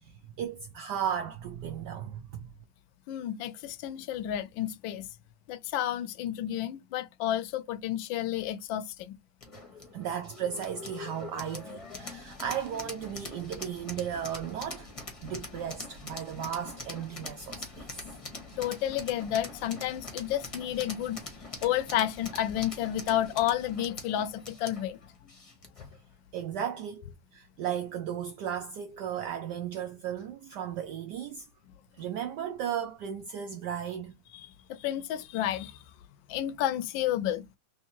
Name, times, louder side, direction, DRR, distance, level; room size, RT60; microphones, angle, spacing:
voice 1, 0.0-2.5 9.9-14.9 15.2-18.1 26.3-27.0 27.3-31.5 32.0-34.1, right 9 dB, 75° right, 0.9 m, -35 dB
voice 2, 3.1-5.1 5.5-9.1 18.6-21.2 21.6-25.0 34.3-35.8 36.3-37.6, left 12 dB, 75° left, 1.2 m, -31 dB
sound 1, 9.4-25.9, left 3 dB, 25° left, 0.7 m, -43 dB
3.6 x 3.2 x 2.8 m
omnidirectional pair, 2.3 m